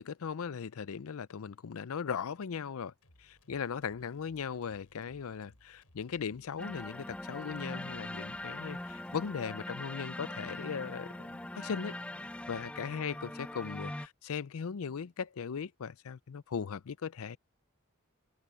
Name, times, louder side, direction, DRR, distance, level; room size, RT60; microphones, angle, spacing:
voice 1, 0.0-2.9 3.2-17.4, left 6 dB, 70° left, 0.5 m, -38 dB
sound 1, 3.0-9.7, left 1 dB, 90° left, 4.7 m, -65 dB
sound 2, 6.6-14.1, left 1 dB, 5° left, 0.4 m, -42 dB
head